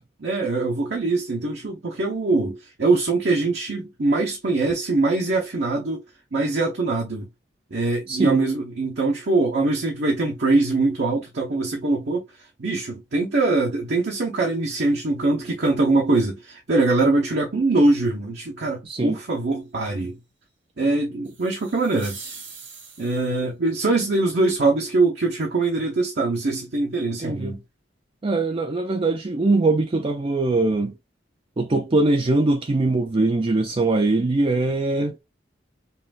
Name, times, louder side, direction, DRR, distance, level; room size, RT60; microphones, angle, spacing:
voice 1, 0.2-6.0 6.3-7.3 7.7-12.3 12.6-20.2 20.8-22.2 23.0-27.6, right 3 dB, 65° right, 0.8 m, -22 dB
voice 2, 8.1-8.4 18.9-19.2 27.2-27.6 28.2-30.9 31.6-35.2, right 2 dB, 30° right, 0.5 m, -22 dB
sound 1, 21.2-23.4, right 4 dB, 90° right, 2.4 m, -42 dB
5.6 x 2.5 x 2.4 m
head